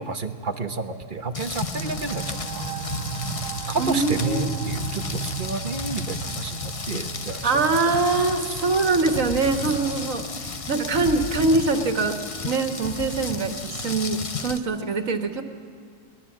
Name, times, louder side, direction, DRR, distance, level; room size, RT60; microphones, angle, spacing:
voice 1, 0.0-2.7 3.7-7.5, right 4 dB, 35° right, 7 dB, 1.0 m, -31 dB
Rain, 1.3-14.6, left 4 dB, 35° left, 0.6 m, -33 dB
sound 1, 1.5-12.8, right 9 dB, 85° right, 1.4 m, -37 dB
voice 2, 3.8-4.7 7.4-15.4, right 3 dB, 55° right, 6 dB, 1.9 m, -24 dB
23.5 x 19.5 x 7.4 m, 2.2 s
omnidirectional pair, 1.6 m